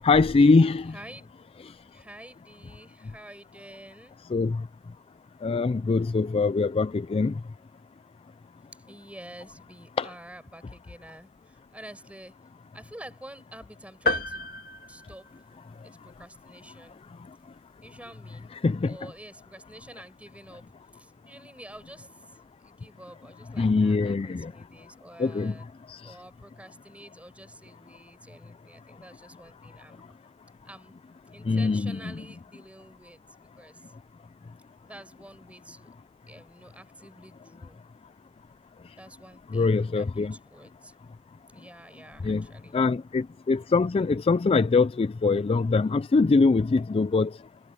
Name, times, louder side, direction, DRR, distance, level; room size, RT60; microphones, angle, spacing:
voice 1, 0.0-0.9 4.3-4.7 5.4-7.4 10.0-10.1 18.5-19.1 23.6-24.5 25.2-25.6 25.9-26.2 31.4-32.0 39.5-40.4 42.2-42.5 42.7-47.4, left 4 dB, 25° left, 0.3 m, -23 dB
voice 2, 0.9-1.4 1.8-4.2 8.9-12.4 12.7-14.5 14.9-15.3 15.8-17.0 17.8-18.5 18.9-20.7 20.9-25.7 26.0-30.1 30.7-31.0 31.3-33.9 34.8-35.9 36.3-37.8 39.0-40.9 41.5-42.9, right 1 dB, 5° right, 7.3 m, -48 dB
sound 1, 14.1-15.8, left 2 dB, 45° left, 2.3 m, -31 dB
head